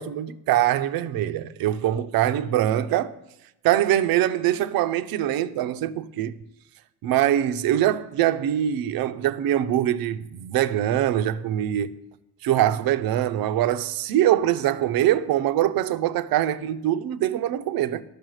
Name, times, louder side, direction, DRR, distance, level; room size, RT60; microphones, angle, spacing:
voice 1, 0.0-3.1 3.6-6.3 7.0-11.9 12.4-18.0, right 12 dB, 80° right, 0.6 m, -23 dB
10.5 x 6.8 x 6.4 m
cardioid pair, 105°, 35 cm